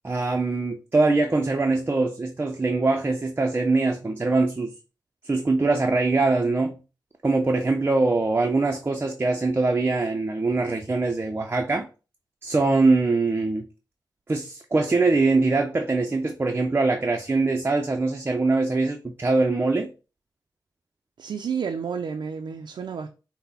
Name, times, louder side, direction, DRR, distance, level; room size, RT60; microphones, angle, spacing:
voice 1, 0.0-4.7 5.2-6.8 7.2-11.9 12.4-13.7 14.3-19.9, right 3 dB, 30° right, 0.5 m, -23 dB
voice 2, 21.2-23.1, right 6 dB, 80° right, 0.4 m, -30 dB
5.8 x 2.1 x 4.0 m
wide cardioid pair, 90°, 8 cm